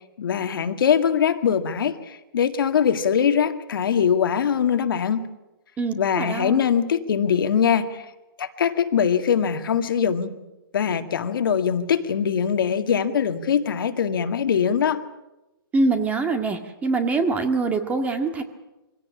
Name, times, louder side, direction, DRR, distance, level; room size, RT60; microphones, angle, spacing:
voice 1, 0.2-5.2 5.9-8.1 8.4-10.4 10.7-15.0, left 7 dB, 65° left, 8 dB, 2.0 m, -22 dB
voice 2, 5.8-6.7 15.7-18.4, right 3 dB, 10° right, 7 dB, 1.9 m, -24 dB
24.5 x 17.0 x 8.7 m, 1.0 s
hypercardioid pair, 150°, 12 cm